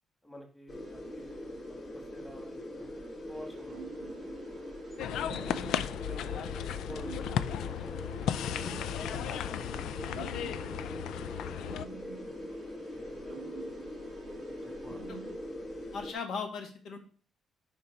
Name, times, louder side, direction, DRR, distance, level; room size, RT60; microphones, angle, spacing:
voice 1, 0.2-1.6 1.9-4.6 5.1-5.6 5.8-8.0 9.1-12.6 12.9-13.9 14.5-15.9, left 1 dB, 5° left, 2 dB, 1.7 m, -52 dB
sound 1, 0.7-16.1, left 1 dB, 35° left, 2.6 m, -42 dB
sound 2, 3.3-15.4, right 9 dB, 65° right, 0.6 m, -51 dB
sound 3, 5.0-11.9, left 10 dB, 90° left, 0.4 m, -35 dB
voice 2, 15.9-17.0, left 5 dB, 65° left, 4 dB, 1.9 m, -38 dB
7.2 x 5.2 x 5.2 m, 0.41 s
cardioid pair, 180°, 0 cm